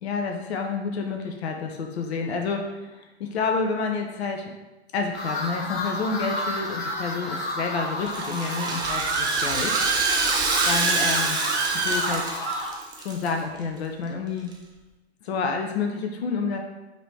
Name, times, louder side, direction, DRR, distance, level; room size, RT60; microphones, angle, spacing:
voice 1, 0.0-4.5 4.9-9.9 10.7-11.4 11.8-12.4 13.0-14.5 15.2-16.6, left 4 dB, 65° left, 3 dB, 0.6 m, -29 dB
sound 1, 5.1-12.7, left 1 dB, 30° left, 1.2 m, -33 dB
Rattle (instrument), 8.0-13.3 13.6-13.7 14.5-14.6, right 3 dB, 10° right, 0.5 m, -28 dB
Screaming, 8.1-12.7, right 4 dB, 75° right, 0.7 m, -27 dB
5.1 x 2.7 x 3.2 m, 1.1 s
figure-of-eight pair, 95°, 34 cm